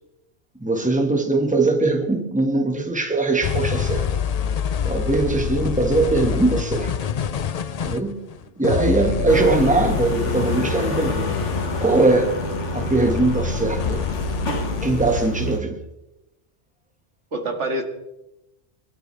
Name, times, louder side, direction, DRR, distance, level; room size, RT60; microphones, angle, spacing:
voice 1, 0.6-4.0 4.8-6.9 7.8-8.2 8.6-11.3 11.8-12.3 12.7-14.0 14.8-15.8, right 2 dB, 5° right, 3 dB, 1.6 m, -21 dB
sound 1, 3.4-15.3, left 7 dB, 50° left, 0.5 m, -27 dB
sound 2, 9.3-15.6, left 2 dB, 85° left, 1.9 m, -27 dB
voice 2, 17.3-17.8, right 1 dB, 80° right, 4 dB, 2.2 m, -27 dB
23.0 x 12.0 x 3.4 m, 0.91 s
omnidirectional pair, 1.2 m